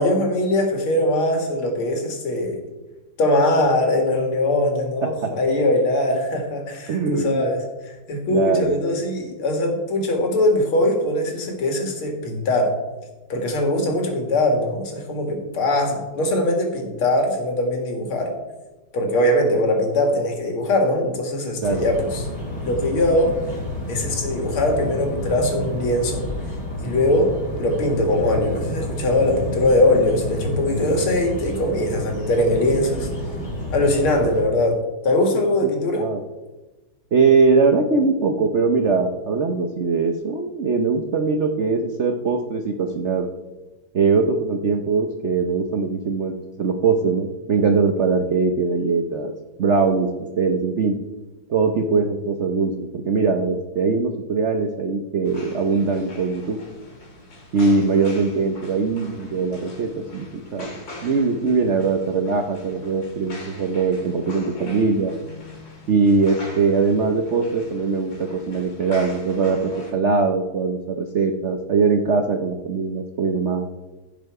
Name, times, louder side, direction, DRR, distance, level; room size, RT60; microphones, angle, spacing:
voice 1, 0.0-2.6 3.2-12.7 13.3-18.3 18.9-22.3 22.6-23.3 23.9-26.3 26.8-33.1 33.7-34.8 35.0-36.1, left 1 dB, 85° left, 3 dB, 2.7 m, -21 dB
voice 2, 5.0-5.3 6.9-7.4 8.3-8.8 21.6-21.9 35.6-35.7 36.0-36.2 37.1-43.3 43.9-46.3 46.6-49.3 49.6-50.1 50.4-51.0 51.5-56.6 57.5-60.7 61.0-65.1 65.9-73.7, right 4 dB, 80° right, 5 dB, 0.6 m, -21 dB
sound 1, 21.6-34.4, left 1 dB, 15° left, 4.1 m, -30 dB
sound 2, 55.2-69.9, left 2 dB, 65° left, 3.2 m, -41 dB
15.5 x 5.7 x 4.7 m, 1.1 s
omnidirectional pair, 2.3 m